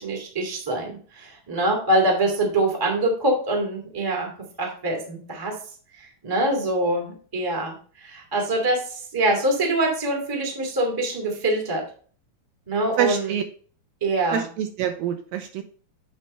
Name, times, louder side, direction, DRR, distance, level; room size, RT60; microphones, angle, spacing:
voice 1, 0.0-4.3 4.6-5.5 6.2-7.7 8.0-8.8 9.1-11.8 12.7-13.3 14.0-14.4, right 1 dB, 30° right, 0 dB, 0.3 m, -24 dB
voice 2, 13.0-13.4 14.3-15.6, right 10 dB, 80° right, 6 dB, 2.1 m, -26 dB
8.4 x 3.3 x 5.3 m, 0.43 s
omnidirectional pair, 4.4 m